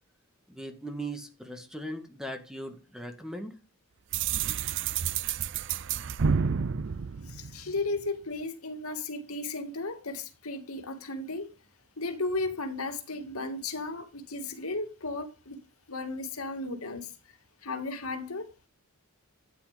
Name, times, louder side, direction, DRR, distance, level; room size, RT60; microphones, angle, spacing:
voice 1, 0.5-3.5, right 1 dB, 5° right, 1.9 m, -39 dB
sound 1, 4.1-8.0, right 6 dB, 55° right, 0.5 m, -30 dB
voice 2, 7.2-11.5 12.0-15.6 15.9-18.5, left 2 dB, 80° left, 2.4 m, -35 dB
13.0 x 9.4 x 5.2 m
head